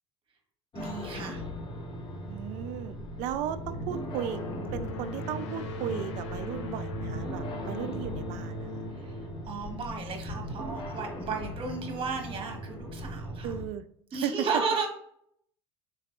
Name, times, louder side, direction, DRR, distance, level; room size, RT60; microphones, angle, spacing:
sound 1, 0.7-13.7, left 1 dB, 35° left, 0.9 m, -39 dB
voice 1, 0.7-1.4 8.9-9.2 9.5-13.6 14.1-14.9, right 4 dB, 35° right, 3 dB, 1.1 m, -34 dB
voice 2, 2.3-4.4 4.7-8.8 13.4-13.8 14.2-14.5, right 10 dB, 55° right, 12 dB, 0.4 m, -35 dB
sound 2, 3.7-10.4, left 1 dB, 75° left, 0.6 m, -40 dB
3.9 x 3.2 x 2.5 m, 0.70 s
hypercardioid pair, 75°, 15 cm